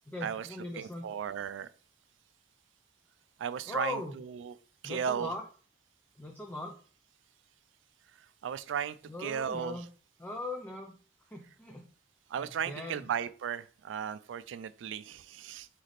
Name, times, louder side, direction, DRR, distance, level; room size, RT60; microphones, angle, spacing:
voice 1, 0.1-1.1 3.7-4.1 4.8-5.4 6.2-6.7 9.1-9.9 10.2-10.9 11.3-11.9 12.4-13.0, left 2 dB, 10° left, 2 dB, 0.5 m, -39 dB
voice 2, 0.7-1.7 3.4-4.6 4.8-5.3 8.4-9.8 12.3-15.7, right 8 dB, 85° right, 15 dB, 0.3 m, -36 dB
4.1 x 3.2 x 4.0 m, 0.41 s
head